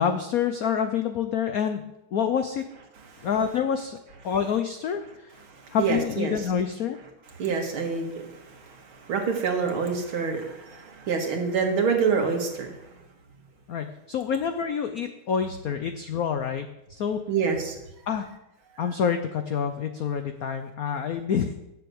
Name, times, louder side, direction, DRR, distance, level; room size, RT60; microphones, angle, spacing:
voice 1, 0.0-1.8 2.1-2.6 3.2-4.0 4.2-5.3 5.7-7.0 13.7-17.2 18.1-18.3 18.8-21.5, left 7 dB, 90° left, 8 dB, 0.7 m, -27 dB
voice 2, 5.5-6.3 7.4-12.8 17.3-17.8, right 5 dB, 70° right, 3 dB, 2.5 m, -27 dB
9.1 x 7.0 x 7.9 m, 0.93 s
omnidirectional pair, 2.4 m